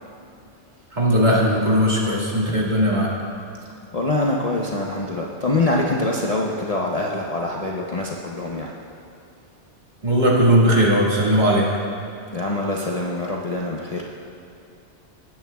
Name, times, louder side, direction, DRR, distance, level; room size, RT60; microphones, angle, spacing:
voice 1, 0.9-3.1 10.0-11.7, equal, 40° right, -5 dB, 1.9 m, -18 dB
voice 2, 3.9-8.7 12.3-14.0, left 2 dB, 40° left, -2 dB, 0.7 m, -24 dB
19.0 x 8.8 x 2.3 m, 2.6 s
omnidirectional pair, 1.2 m